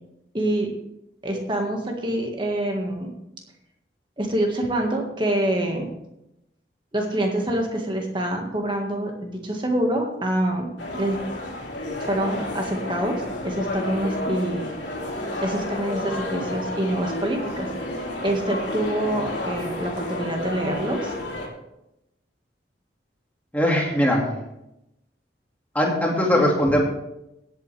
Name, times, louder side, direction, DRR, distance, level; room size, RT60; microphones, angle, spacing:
voice 1, 0.3-0.7 1.2-3.1 4.2-5.9 6.9-11.2 12.0-14.7 15.4-17.7 18.2-21.1, right 1 dB, 25° right, 2 dB, 1.8 m, -26 dB
sound 1, 10.8-21.5, left 1 dB, 90° left, 2.7 m, -31 dB
voice 2, 23.5-24.4 25.7-26.8, equal, 10° left, -2 dB, 2.1 m, -20 dB
17.5 x 8.3 x 3.4 m, 0.86 s
head